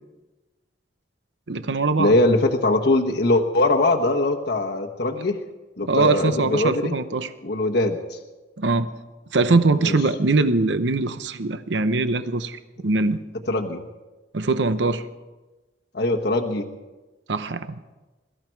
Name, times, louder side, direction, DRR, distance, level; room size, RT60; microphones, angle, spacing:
voice 1, 1.5-2.1 5.8-7.3 8.6-8.9 9.3-13.2 14.3-15.0 17.3-17.7, right 3 dB, 75° right, 11 dB, 0.8 m, -22 dB
voice 2, 2.0-5.4 5.8-6.9 7.4-8.2 9.8-10.0 13.5-13.8 15.9-16.7, left 2 dB, 65° left, 2 dB, 1.1 m, -21 dB
23.0 x 13.5 x 4.6 m, 1.1 s
head